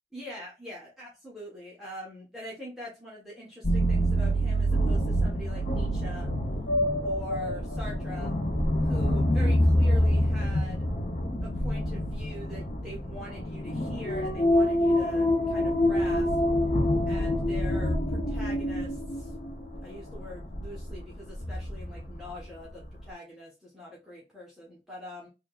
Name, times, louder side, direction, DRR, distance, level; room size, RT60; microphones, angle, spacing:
voice 1, 0.1-6.3 7.0-8.3 8.8-10.8 11.4-16.3 17.1-19.3 19.8-25.3, left 1 dB, ahead, 1.1 m, -43 dB
sound 1, 3.6-22.4 22.8-23.0, equal, 40° left, 0.7 m, -26 dB
3.5 x 3.2 x 2.4 m
head